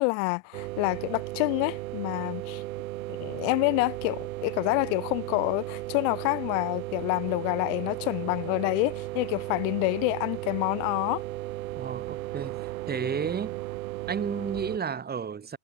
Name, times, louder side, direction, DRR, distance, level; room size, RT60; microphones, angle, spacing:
voice 1, 0.0-2.6 3.1-11.2, left 38 dB, 55° left, 2.1 m, -27 dB
sound 1, 0.5-14.8, right 18 dB, 70° right, 5.3 m, -35 dB
voice 2, 11.7-13.6 14.1-15.6, right 6 dB, 20° right, 6.5 m, -32 dB
hypercardioid pair, 110°, 43 cm